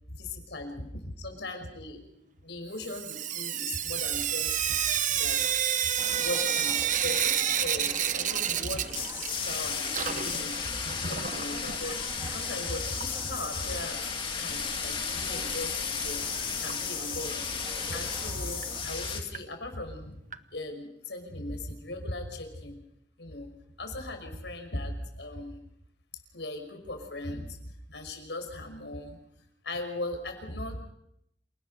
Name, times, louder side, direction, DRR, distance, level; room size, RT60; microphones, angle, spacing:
voice 1, 0.1-2.0 2.4-4.6 5.1-5.6 6.2-10.6 10.9-14.1 14.4-16.3 16.6-17.4 17.9-20.1 20.5-22.8 23.2-23.5 23.8-25.6 26.3-27.6 27.9-29.2 29.6-30.8, left 2 dB, 85° left, 6 dB, 5.6 m, -38 dB
Sink (filling or washing) / Drip, 2.8-9.6 9.8-11.8 12.9-13.0 13.4-13.5 13.7-13.8 16.7-16.8 17.3-17.4 17.9-18.0 18.6-18.7 19.3-19.4 20.3-20.4, right 9 dB, 50° right, 1.0 m, -29 dB
sound 1, 6.0-18.8, right 1 dB, 25° right, 2.9 m, -45 dB
sound 2, 8.9-19.2, left 6 dB, 30° left, 2.7 m, -34 dB
28.0 x 19.0 x 5.6 m, 0.77 s
head